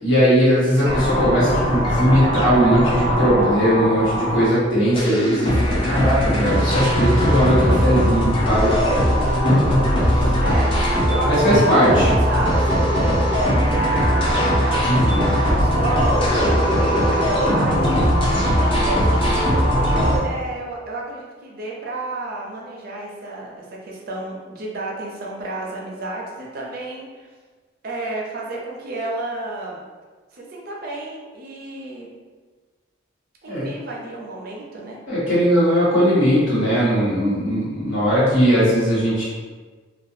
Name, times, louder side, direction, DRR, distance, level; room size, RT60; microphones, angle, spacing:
voice 1, 0.0-10.3 11.3-12.1 14.8-15.2 33.4-33.7 35.1-39.2, equal, 75° left, -9 dB, 1.1 m, -19 dB
sound 1, 0.8-4.6 5.0-20.2, equal, 25° left, 0.5 m, -19 dB
voice 2, 10.4-17.9 18.5-19.2 19.8-27.3 27.8-29.9 30.3-32.1 33.4-35.0, right 2 dB, 50° right, -3 dB, 0.4 m, -31 dB
2.3 x 2.2 x 2.6 m, 1.4 s
head